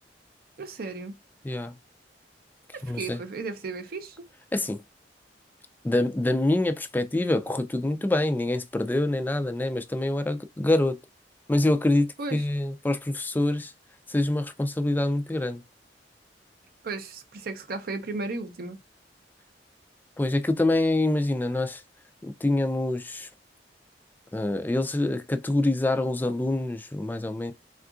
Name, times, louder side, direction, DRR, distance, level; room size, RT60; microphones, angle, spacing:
voice 1, 0.6-1.2 2.7-4.3 12.2-12.5 16.8-18.8, right 3 dB, 55° right, 0.5 m, -35 dB
voice 2, 1.4-1.8 2.9-3.2 4.5-4.8 5.8-11.0 11.5-12.1 12.3-13.7 14.1-15.6 20.2-21.8 22.2-23.3 24.3-27.5, left 1 dB, 10° left, 0.3 m, -25 dB
3.6 x 2.4 x 2.4 m
head